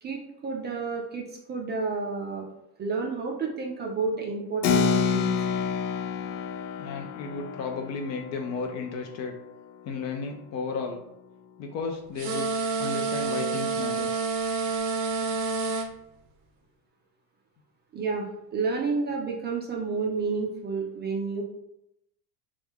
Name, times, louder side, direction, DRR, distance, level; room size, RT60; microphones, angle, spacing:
voice 1, 0.0-2.4 2.8-5.3 17.9-21.4, right 4 dB, 25° right, 0 dB, 0.4 m, -30 dB
Keyboard (musical), 4.6-10.7, left 6 dB, 90° left, 0.5 m, -29 dB
voice 2, 6.8-9.3 9.8-11.0 11.6-12.5 12.8-14.1, left 4 dB, 40° left, 4 dB, 0.4 m, -33 dB
sound 1, 12.2-15.9, right 4 dB, 70° right, 0.7 m, -28 dB
3.2 x 2.3 x 3.4 m, 0.83 s
supercardioid pair, 115°, 46 cm